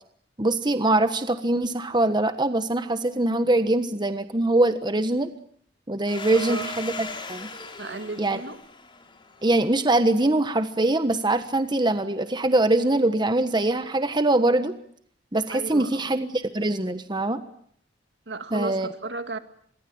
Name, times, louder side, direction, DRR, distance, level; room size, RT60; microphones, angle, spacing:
voice 1, 0.4-5.3 5.9-7.5 8.2-8.4 9.4-14.7 15.3-17.4 18.5-18.9, right 2 dB, 25° right, 10 dB, 1.3 m, -23 dB
Domestic sounds home sounds, 6.1-10.5, left 2 dB, 30° left, 4.0 m, -39 dB
voice 2, 7.8-8.6 15.5-16.1 18.3-19.4, right 3 dB, 75° right, 9 dB, 2.4 m, -34 dB
26.5 x 22.5 x 8.7 m, 0.64 s
head